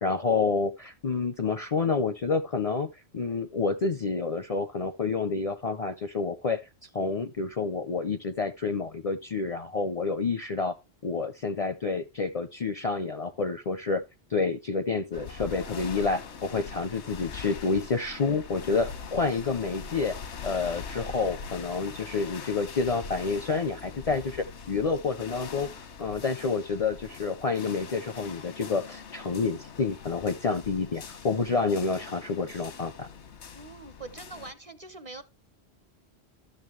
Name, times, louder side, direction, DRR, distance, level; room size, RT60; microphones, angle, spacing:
voice 1, 0.0-6.6 6.9-10.8 11.0-14.0 14.3-20.2 20.4-25.7 26.0-33.1, left 4 dB, 45° left, 0.5 m, -29 dB
sound 1, 15.1-34.5, left 6 dB, 90° left, 1.3 m, -42 dB
voice 2, 21.1-21.5 33.5-35.2, right 3 dB, 40° right, 0.7 m, -44 dB
12.5 x 6.7 x 3.1 m
omnidirectional pair, 1.1 m